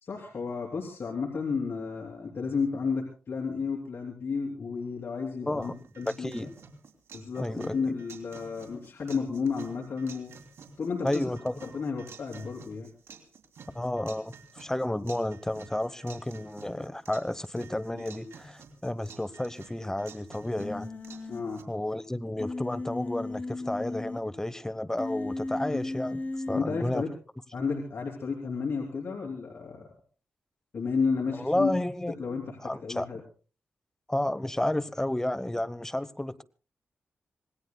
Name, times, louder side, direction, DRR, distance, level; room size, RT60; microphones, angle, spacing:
voice 1, 0.0-6.5 7.1-10.3 10.8-11.2 11.6-12.9 17.9-18.0 21.3-21.7 25.7-25.9 26.5-27.1 27.5-29.9 30.7-31.7 32.2-33.2, left 5 dB, 60° left, -2 dB, 3.3 m, -32 dB
sound 1, 5.6-21.6, right 5 dB, 80° right, 3.0 m, -51 dB
voice 2, 6.0-6.5 7.4-7.8 11.0-11.6 13.7-20.9 21.7-26.2 26.5-27.0 31.4-32.1 32.6-33.1 34.1-36.4, left 1 dB, 10° left, 14 dB, 1.0 m, -31 dB
Human voice, 20.6-21.4 22.4-24.2 25.0-26.6, left 2 dB, 40° left, 2.6 m, -35 dB
26.5 x 19.5 x 2.3 m, 0.37 s
cardioid pair, 80°, 5 cm